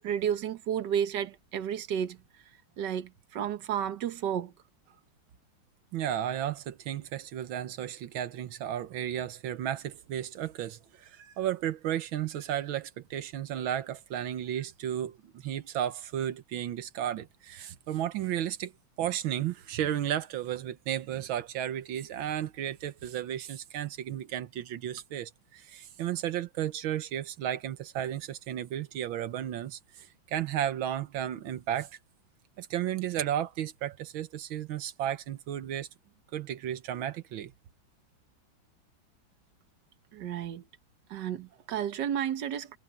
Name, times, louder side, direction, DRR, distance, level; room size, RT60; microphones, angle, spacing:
voice 1, 0.0-2.2 2.8-4.5 40.1-40.6 41.1-42.8, right 9 dB, 65° right, 1.8 m, -32 dB
voice 2, 5.9-18.7 19.0-31.9 32.6-35.9 36.3-37.5, right 11 dB, 90° right, 1.8 m, -33 dB
omnidirectional pair, 2.1 m